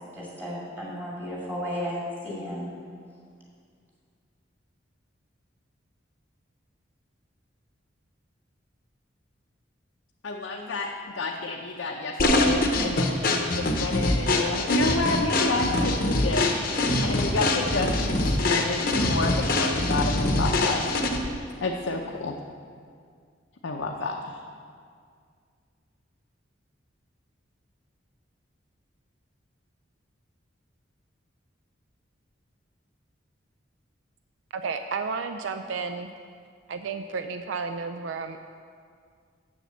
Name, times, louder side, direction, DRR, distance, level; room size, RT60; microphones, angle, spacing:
voice 1, 0.1-2.7, equal, 10° right, -6 dB, 2.2 m, -33 dB
voice 2, 10.2-16.5 16.8-20.9 21.1-21.3 21.6-22.4 23.6-24.3, left 3 dB, 80° left, 0 dB, 0.6 m, -30 dB
sound 1, 12.2-21.3, left 2 dB, 45° left, 0.8 m, -24 dB
voice 3, 34.5-36.1 36.7-38.4, right 5 dB, 75° right, 8 dB, 0.4 m, -32 dB
7.1 x 6.9 x 7.3 m, 2.1 s
head